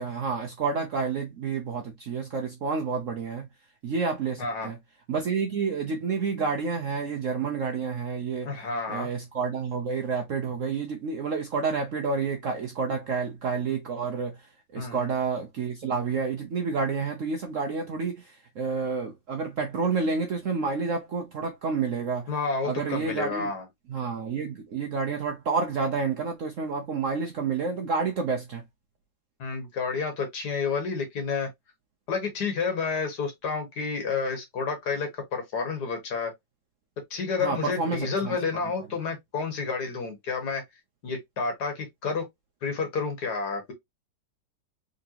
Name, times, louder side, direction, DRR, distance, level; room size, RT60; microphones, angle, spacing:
voice 1, 0.0-3.5 3.8-4.8 5.1-22.3 22.6-23.5 23.9-28.6 37.4-38.4, right 5 dB, 65° right, 0.8 m, -29 dB
voice 2, 4.4-4.7 8.5-9.1 14.8-15.1 22.3-23.7 29.4-31.5 32.1-36.3 37.1-40.6 41.0-42.2 42.6-43.7, left 5 dB, 60° left, 1.8 m, -30 dB
3.9 x 3.5 x 2.8 m
omnidirectional pair, 2.1 m